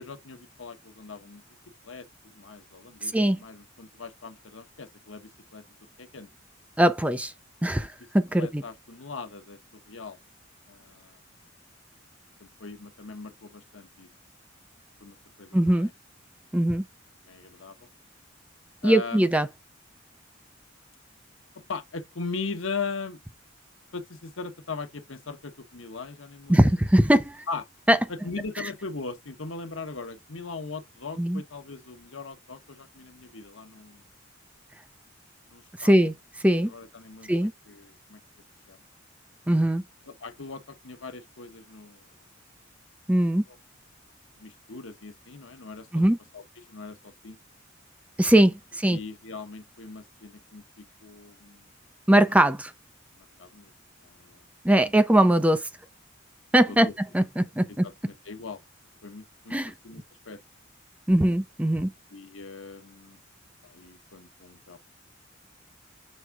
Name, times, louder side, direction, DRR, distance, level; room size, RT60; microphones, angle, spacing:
voice 1, 0.0-1.4 1.8-2.1 2.3-5.6 6.0-6.3 8.4-9.6 9.9-10.2 10.7-11.2 12.4-14.1 15.0-15.9 17.3-17.8 18.8-19.2 21.7-23.2 23.9-26.6 27.5-27.6 28.2-34.0 35.5-35.9 36.6-38.2 38.7-38.8 40.1-42.1 44.4-45.9 46.3-46.4 46.7-47.4 48.9-51.7 53.2-53.7 54.0-54.4 56.7-56.9 57.8-58.6 59.0-59.6 59.8-60.4 62.1-63.2 63.6-64.8, left 4 dB, 85° left, 1.1 m, -39 dB
voice 2, 3.0-3.4 6.8-7.3 7.6-8.6 15.5-15.9 16.5-16.8 18.8-19.5 26.5-27.5 27.9-28.0 31.2-31.4 35.8-36.1 36.4-36.7 37.3-37.5 39.5-39.8 43.1-43.4 45.9-46.2 48.2-49.0 52.1-52.7 54.6-55.7 56.5-56.9 57.1-57.9 59.5-59.7 61.1-61.9, right 1 dB, 5° right, 0.5 m, -21 dB
6.4 x 3.6 x 4.6 m
head